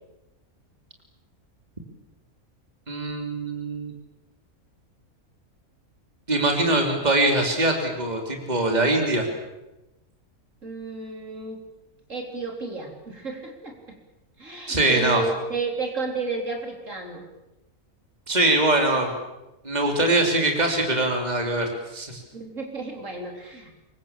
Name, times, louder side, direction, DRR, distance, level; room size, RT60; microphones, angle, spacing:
voice 1, 2.9-3.9 6.3-9.2 14.7-15.2 18.3-19.1 19.6-22.2, right 2 dB, 30° right, 3 dB, 3.4 m, -22 dB
voice 2, 10.6-11.6 12.1-14.0 14.4-17.3 22.3-23.8, right 3 dB, 60° right, 3 dB, 4.1 m, -32 dB
26.5 x 23.5 x 7.4 m, 0.97 s
omnidirectional pair, 1.5 m